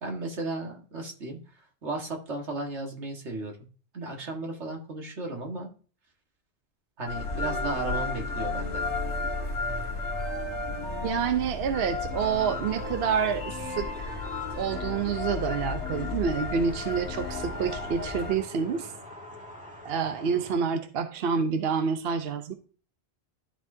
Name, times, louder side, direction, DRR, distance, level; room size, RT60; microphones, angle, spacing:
voice 1, 0.0-1.4 1.8-3.6 3.9-5.7 7.0-8.8, right 2 dB, 90° right, 1 dB, 1.9 m, -34 dB
sound 1, 7.1-18.4, left 3 dB, 80° left, 1.7 m, -33 dB
voice 2, 11.0-14.2 14.5-18.9 19.8-22.5, right 6 dB, 65° right, 7 dB, 0.9 m, -28 dB
sound 2, 12.1-20.5, equal, 5° right, 1.9 m, -44 dB
12.5 x 4.6 x 2.6 m, 0.38 s
omnidirectional pair, 1.1 m